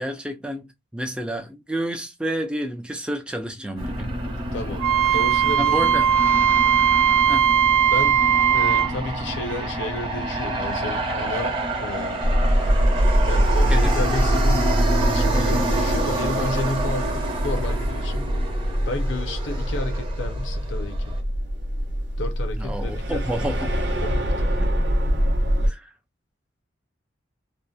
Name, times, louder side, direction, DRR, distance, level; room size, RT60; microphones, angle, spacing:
voice 1, 0.0-4.1 5.6-6.1 7.3-7.5 13.7-14.0 22.5-23.7 24.6-24.7 25.6-25.9, right 1 dB, 5° right, 0.3 m, -30 dB
Aircraft, 3.8-21.2, right 2 dB, 25° right, 0.8 m, -28 dB
voice 2, 4.5-4.8 5.1-5.9 7.8-8.2 8.5-12.2 13.2-14.7 15.0-18.3 18.9-21.0 22.2-23.2 24.0-24.5, left 2 dB, 70° left, 0.6 m, -32 dB
Wind instrument woodwind instrument, 4.8-8.9, right 8 dB, 90° right, 0.3 m, -19 dB
sound 1, 12.2-25.7, equal, 60° right, 0.7 m, -23 dB
2.7 x 2.1 x 2.3 m
head